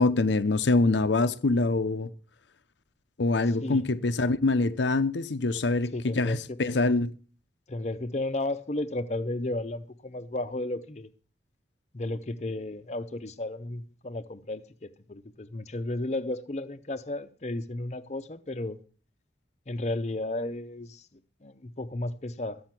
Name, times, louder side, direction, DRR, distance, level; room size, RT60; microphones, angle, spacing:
voice 1, 0.0-2.1 3.2-7.1, left 3 dB, 80° left, 0.7 m, -25 dB
voice 2, 5.9-6.9 7.7-11.1 11.9-18.8 19.7-22.6, left 2 dB, 40° left, 0.7 m, -34 dB
13.5 x 8.6 x 5.9 m
head